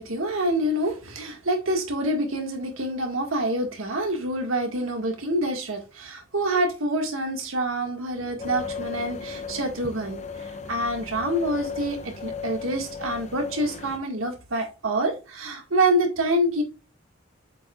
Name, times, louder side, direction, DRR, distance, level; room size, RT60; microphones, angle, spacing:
voice 1, 0.0-16.6, right 1 dB, 90° right, 1.8 m, -26 dB
sound 1, 8.4-14.0, left 5 dB, 35° left, 0.6 m, -36 dB
7.3 x 5.4 x 2.4 m
head